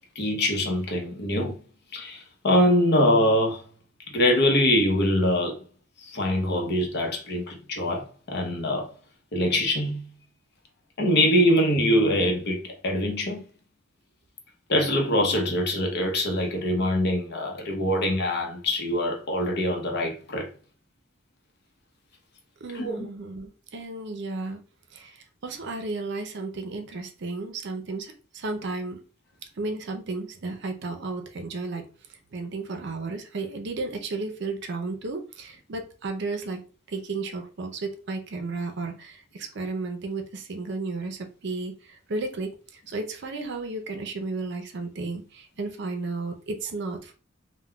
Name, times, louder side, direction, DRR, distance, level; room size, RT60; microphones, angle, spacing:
voice 1, 0.2-1.6 1.9-3.6 4.1-5.5 6.0-8.9 9.3-10.1 11.0-13.5 14.7-20.5 22.7-23.1, left 1 dB, 55° left, 0.7 m, -24 dB
voice 2, 22.6-24.6 24.9-29.0 29.6-31.9 32.3-36.6 36.9-47.1, right 3 dB, 55° right, 0.5 m, -33 dB
3.6 x 2.1 x 2.2 m
head